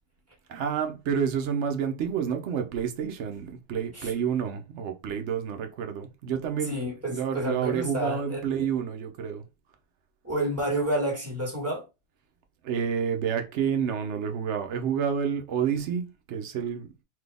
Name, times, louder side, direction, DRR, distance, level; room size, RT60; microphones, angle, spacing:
voice 1, 0.5-9.4 12.6-17.0, right 7 dB, 85° right, 0.9 m, -29 dB
voice 2, 6.6-8.4 10.2-11.8, right 1 dB, 15° right, 1.5 m, -29 dB
4.0 x 2.7 x 3.4 m
omnidirectional pair, 1.1 m